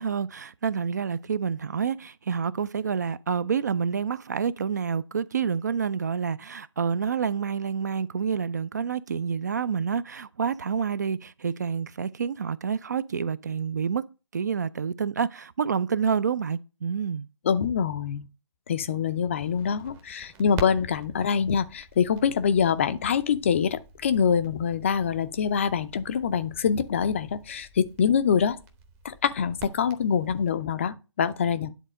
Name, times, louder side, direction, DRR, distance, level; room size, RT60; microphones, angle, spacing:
voice 1, 0.0-14.1 14.3-17.3, right 6 dB, 35° right, 0.4 m, -28 dB
voice 2, 17.4-18.3 18.7-28.6 29.0-31.7, left 7 dB, 25° left, 0.5 m, -25 dB
Crackle, 19.3-30.5, right 4 dB, 10° right, 0.7 m, -45 dB
10.0 x 4.1 x 6.4 m
figure-of-eight pair, 145°, 16 cm